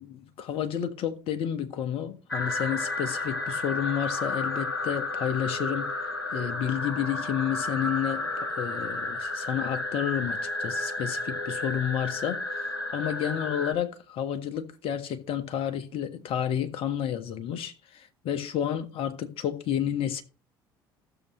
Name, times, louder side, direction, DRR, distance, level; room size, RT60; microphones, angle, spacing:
voice 1, 0.0-5.9 6.3-20.2, left 9 dB, 50° left, 1.6 m, -31 dB
sound 1, 2.3-13.7, left 2 dB, 85° left, 1.2 m, -32 dB
15.5 x 7.2 x 3.1 m
figure-of-eight pair, 55°, 12 cm